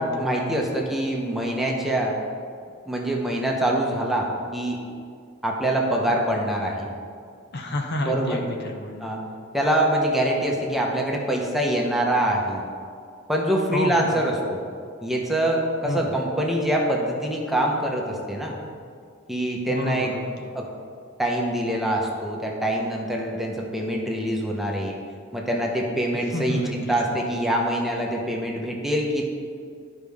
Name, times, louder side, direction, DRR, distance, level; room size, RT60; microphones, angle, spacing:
voice 1, 0.2-2.2 2.9-4.8 5.4-6.9 8.0-8.4 9.0-9.2 9.5-12.6 13.3-14.6 15.0-18.6 19.3-20.1 20.5-20.7 21.2-24.9 25.3-29.2, right 1 dB, ahead, -2 dB, 0.8 m, -24 dB
voice 2, 7.5-9.1 13.7-14.1 15.8-16.2 19.7-20.5 26.3-27.3, left 1 dB, 55° left, 3 dB, 0.8 m, -30 dB
11.5 x 5.2 x 3.5 m, 2.2 s
head